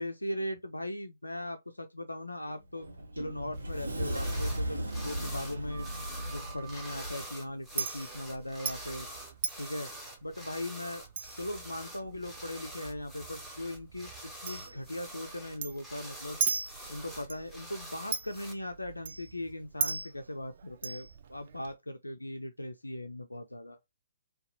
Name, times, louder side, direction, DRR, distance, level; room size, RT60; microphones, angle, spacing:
voice 1, 0.0-2.9 3.1-5.9 6.3-9.1 9.6-9.9 10.2-11.0 11.4-16.4 16.9-23.8, left 1 dB, 80° left, 0.4 m, -39 dB
Sliding door, 2.5-7.3, right 1 dB, 65° right, 0.8 m, -36 dB
Chink clink, 3.5-21.7, right 6 dB, 45° right, 0.4 m, -41 dB
Griptape dragged across carpet, 4.1-4.6 4.9-18.5, right 1 dB, ahead, 0.6 m, -46 dB
2.5 x 2.2 x 2.5 m
figure-of-eight pair, 130°, 0 cm